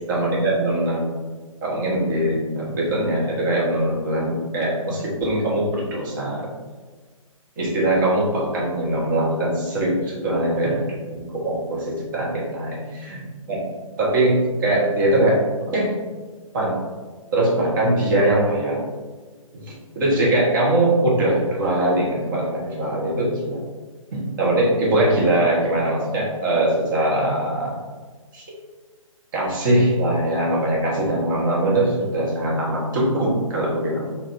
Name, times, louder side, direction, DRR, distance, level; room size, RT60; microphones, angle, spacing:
voice 1, 0.1-1.0 1.6-6.5 7.6-12.7 13.0-13.2 13.5-13.6 14.0-15.9 16.5-16.8 17.3-18.9 19.5-23.6 24.1-27.8 28.3-28.4 29.3-34.1, right 1 dB, 35° right, -5 dB, 1.2 m, -21 dB
5.1 x 2.9 x 2.6 m, 1.4 s
figure-of-eight pair, 135°, 18 cm